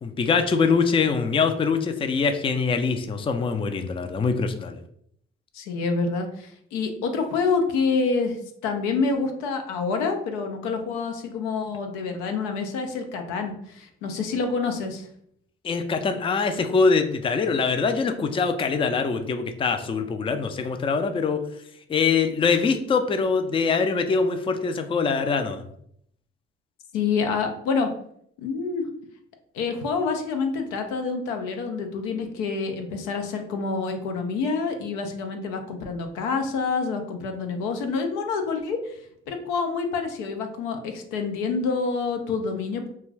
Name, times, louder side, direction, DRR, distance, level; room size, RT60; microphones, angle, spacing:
voice 1, 0.0-4.8 15.6-21.4 21.9-25.6, left 5 dB, 20° left, 7 dB, 0.3 m, -23 dB
voice 2, 5.5-8.4 8.6-15.1 26.9-27.9 28.4-28.9 29.5-39.0 39.3-42.9, left 4 dB, 85° left, 5 dB, 0.4 m, -27 dB
2.4 x 2.3 x 3.2 m, 0.69 s
hypercardioid pair, 50°, 29 cm